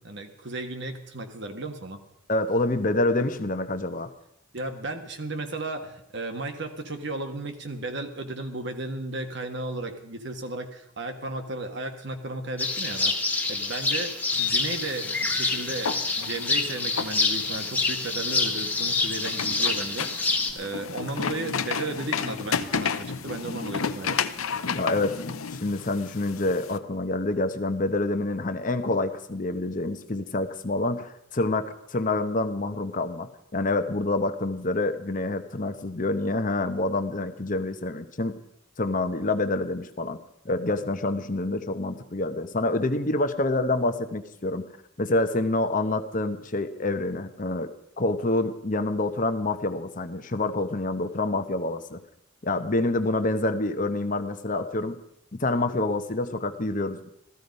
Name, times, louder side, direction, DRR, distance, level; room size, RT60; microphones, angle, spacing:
voice 1, 0.0-2.0 4.5-13.1 13.5-24.2, right 2 dB, 55° right, 6 dB, 1.5 m, -34 dB
voice 2, 2.3-4.1 24.7-38.4 38.8-40.2 40.4-44.7 45.0-47.7 48.0-52.0 52.4-55.0 55.3-57.0, left 2 dB, 40° left, 8 dB, 0.9 m, -27 dB
sound 1, 12.6-20.5, left 3 dB, 10° left, 1.3 m, -27 dB
sound 2, 14.3-26.8, left 6 dB, 80° left, 0.8 m, -33 dB
15.0 x 14.5 x 5.3 m, 0.77 s
head